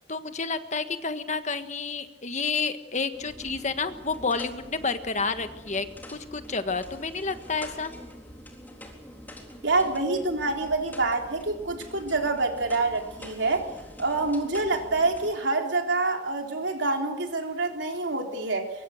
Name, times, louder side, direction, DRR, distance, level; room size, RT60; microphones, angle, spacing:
voice 1, 0.1-5.9 6.1-7.9, left 4 dB, 40° left, 9 dB, 1.5 m, -30 dB
sound 1, 3.1-15.3, equal, 10° left, 3.8 m, -46 dB
voice 2, 9.6-13.7 14.0-18.7, right 3 dB, 85° right, 3 dB, 4.0 m, -26 dB
24.0 x 23.0 x 6.6 m, 0.94 s
head